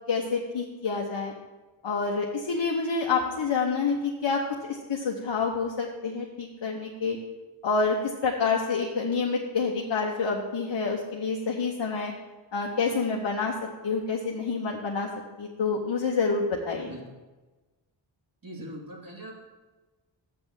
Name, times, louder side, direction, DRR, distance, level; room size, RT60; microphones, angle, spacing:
voice 1, 0.1-1.3 1.8-4.4 4.9-7.2 7.6-12.1 12.5-13.5 13.8-15.1 15.4-16.9, left 4 dB, 60° left, 0 dB, 1.0 m, -28 dB
voice 2, 18.4-19.4, right 1 dB, 45° right, -1 dB, 2.4 m, -41 dB
6.8 x 6.1 x 7.0 m, 1.2 s
cardioid pair, 60°, 48 cm